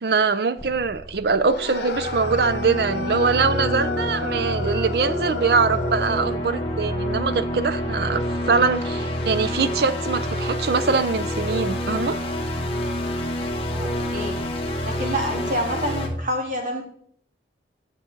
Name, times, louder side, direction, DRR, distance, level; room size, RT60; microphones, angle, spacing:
voice 1, 0.0-12.2, right 4 dB, 60° right, 0.5 m, -23 dB
sound 1, 0.6-15.9, left 1 dB, 15° left, 0.9 m, -45 dB
sound 2, 1.4-6.2, left 3 dB, 70° left, 1.0 m, -32 dB
sound 3, 1.9-16.1, equal, 30° left, 1.4 m, -28 dB
voice 2, 13.7-14.4 14.8-16.8, equal, 45° right, 2.0 m, -28 dB
9.7 x 7.2 x 3.9 m
head